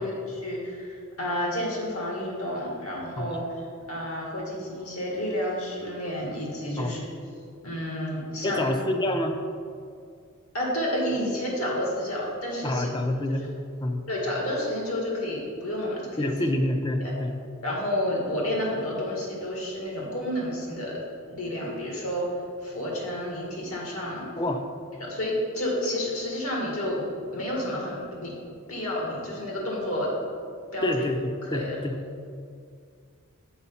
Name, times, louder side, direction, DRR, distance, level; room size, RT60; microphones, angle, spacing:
voice 1, 0.0-7.1 7.6-8.7 10.5-12.9 13.3-13.5 14.1-16.5 17.0-17.1 17.6-21.0 21.3-22.3 22.6-24.3 25.0-27.0 27.3-28.3 28.7-30.1 30.7-31.1 31.4-31.8, left 1 dB, 75° left, -3 dB, 2.0 m, -30 dB
voice 2, 8.4-9.4 12.6-13.4 13.8-14.0 16.2-17.3 24.4-24.6 30.8-32.0, left 1 dB, 20° left, 5 dB, 0.5 m, -27 dB
7.1 x 4.8 x 5.6 m, 2.3 s
head